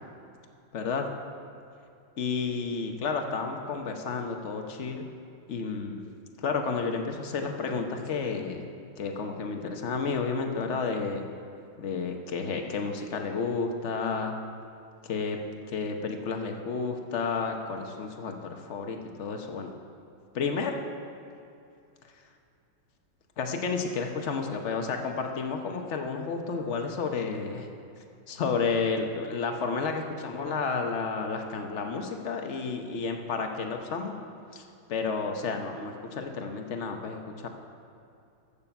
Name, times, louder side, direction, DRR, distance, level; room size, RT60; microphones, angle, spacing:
voice 1, 0.7-1.0 2.2-5.1 5.5-6.0 6.4-8.7 9.0-11.2 11.8-14.3 15.0-15.4 15.7-19.7 20.3-20.8 23.4-27.7 28.3-34.1 34.5-34.6 34.9-37.5, left 4 dB, 50° left, 4 dB, 0.9 m, -31 dB
14.5 x 6.9 x 5.9 m, 2.5 s
omnidirectional pair, 2.3 m